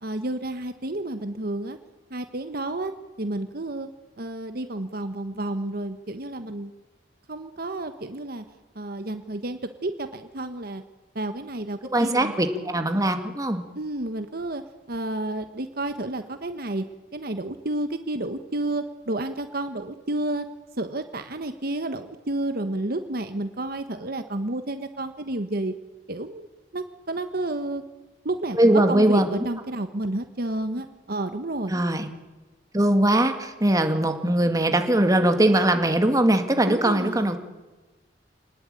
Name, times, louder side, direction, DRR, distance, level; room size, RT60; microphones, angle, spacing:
voice 1, 0.0-1.8 2.1-2.9 3.2-3.9 4.2-6.7 7.3-8.4 8.7-10.8 11.1-12.3 13.7-14.6 14.9-16.8 17.1-20.4 20.8-25.7 26.1-26.5 26.7-27.8 28.2-31.7 36.7-37.4, right 2 dB, 55° right, 8 dB, 1.3 m, -30 dB
voice 2, 11.9-13.6 28.5-29.3 31.7-32.1 32.7-37.4, right 1 dB, 20° right, 6 dB, 2.1 m, -21 dB
26.0 x 19.5 x 9.1 m, 1.2 s
head